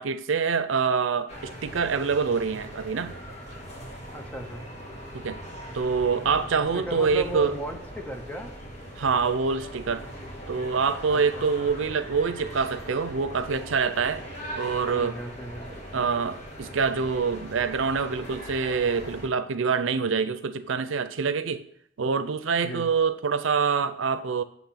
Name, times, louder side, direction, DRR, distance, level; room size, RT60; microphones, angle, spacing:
voice 1, 0.0-3.2 5.1-5.4 5.7-7.5 9.0-10.0 10.5-14.2 14.6-15.2 15.9-21.6 22.0-24.4, right 5 dB, 85° right, 12 dB, 0.6 m, -26 dB
sound 1, 1.3-19.3, equal, 35° left, 1.6 m, -40 dB
voice 2, 4.1-4.6 6.7-8.6 11.1-11.5 14.9-15.7 22.6-22.9, right 1 dB, 10° left, 4 dB, 0.7 m, -36 dB
8.2 x 3.6 x 5.7 m, 0.68 s
head